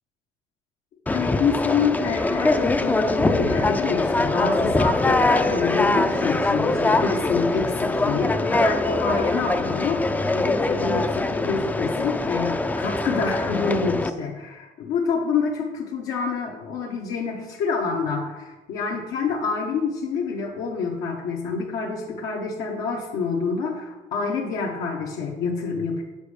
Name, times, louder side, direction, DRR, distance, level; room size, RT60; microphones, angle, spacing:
voice 1, 1.1-26.0, left 5 dB, 80° left, -2 dB, 0.9 m, -27 dB
Conversation, 1.1-14.1, left 2 dB, 10° left, 0.3 m, -23 dB
7.0 x 4.4 x 4.9 m, 1.1 s
cardioid pair, 110°, 17 cm